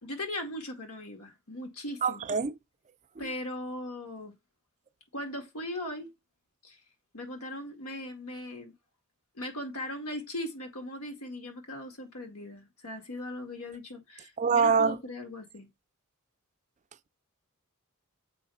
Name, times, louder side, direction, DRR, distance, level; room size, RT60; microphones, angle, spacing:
voice 1, 0.0-2.2 3.2-4.3 5.1-6.1 6.6-6.8 7.1-8.7 9.4-15.7, left 1 dB, 80° left, 2.0 m, -39 dB
voice 2, 2.0-2.5 14.4-15.0, right 5 dB, 30° right, 0.4 m, -24 dB
7.4 x 3.2 x 5.5 m
head